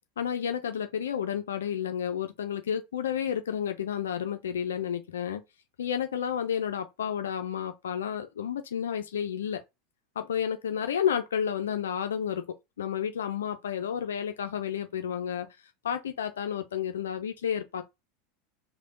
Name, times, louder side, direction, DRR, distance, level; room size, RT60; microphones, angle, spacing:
voice 1, 0.2-5.4 5.8-9.6 10.2-12.4 12.8-15.5 15.8-17.8, left 8 dB, 85° left, 0.4 m, -31 dB
3.4 x 2.1 x 3.7 m
hypercardioid pair, 95°, 0 cm